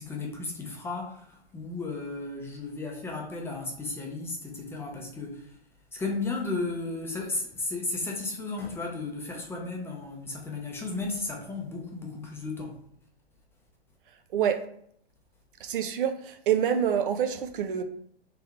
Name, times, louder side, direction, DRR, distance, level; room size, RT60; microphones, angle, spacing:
voice 1, 0.0-5.6 5.9-12.8, left 3 dB, 10° left, 0.5 m, -34 dB
voice 2, 15.6-17.8, right 9 dB, 55° right, 0.5 m, -26 dB
3.5 x 3.4 x 3.5 m
hypercardioid pair, 120°, 32 cm